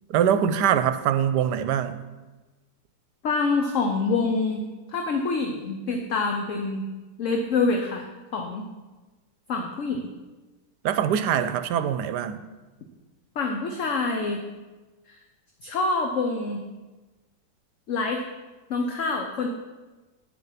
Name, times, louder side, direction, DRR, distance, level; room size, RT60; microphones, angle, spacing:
voice 1, 0.1-2.0 10.8-12.4, right 9 dB, 80° right, 10 dB, 1.2 m, -23 dB
voice 2, 3.2-6.8 7.2-8.0 8.3-8.7 9.5-10.1 13.4-14.4 15.1-15.2 15.6-16.6 17.9-18.2 18.7-19.5, left 3 dB, 55° left, 3 dB, 1.1 m, -26 dB
10.0 x 7.2 x 5.8 m, 1.2 s
omnidirectional pair, 1.8 m